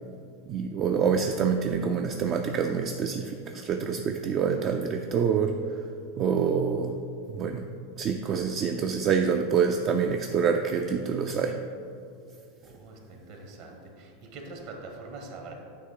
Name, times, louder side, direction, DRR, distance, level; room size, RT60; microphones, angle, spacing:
voice 1, 0.5-5.6 6.2-7.0 7.3-7.7 8.0-11.6, right 6 dB, 40° right, 4 dB, 0.4 m, -26 dB
voice 2, 12.6-15.5, right 3 dB, 55° right, 2 dB, 1.2 m, -43 dB
8.5 x 3.1 x 4.8 m, 2.4 s
hypercardioid pair, 90°, 0 cm